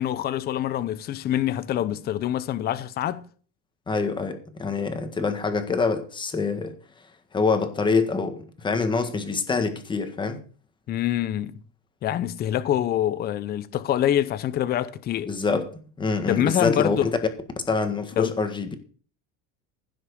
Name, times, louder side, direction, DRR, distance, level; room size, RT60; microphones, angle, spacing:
voice 1, 0.0-3.3 10.9-11.6 12.0-15.3 16.3-17.2 18.2-18.4, left 11 dB, 30° left, 0.7 m, -25 dB
voice 2, 3.9-6.7 7.3-10.4 15.3-15.6 16.0-17.1 17.7-18.7, left 4 dB, 15° left, 1.6 m, -25 dB
15.5 x 6.2 x 6.4 m
cardioid pair, 170°, 32 cm